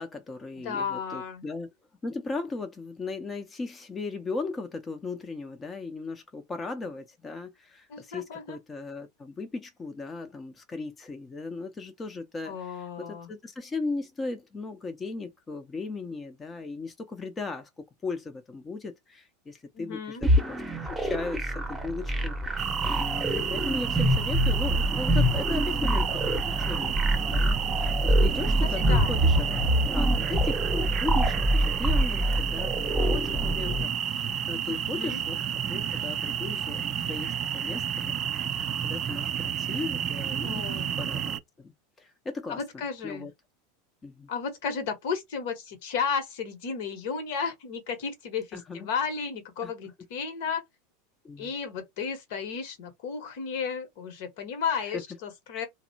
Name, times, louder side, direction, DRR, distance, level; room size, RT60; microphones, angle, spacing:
voice 1, 0.0-1.7 2.0-20.6 21.0-27.0 27.3-29.5 29.9-35.4 35.7-40.7 41.0-42.6 43.0-43.3 44.0-44.3 48.5-48.9 49.6-49.7 51.2-51.5 54.8-55.0, left 3 dB, 20° left, 0.6 m, -37 dB
voice 2, 0.6-1.4 7.9-8.6 12.5-13.3 19.7-20.2 28.8-29.1 34.9-35.2 40.4-40.9 42.5-43.3 44.3-50.6 51.4-55.7, left 6 dB, 60° left, 0.9 m, -33 dB
sound 1, 20.2-33.8, right 1 dB, 10° right, 0.8 m, -25 dB
sound 2, 22.6-41.4, right 8 dB, 35° right, 0.3 m, -31 dB
2.7 x 2.1 x 2.6 m
figure-of-eight pair, 85°, 0 cm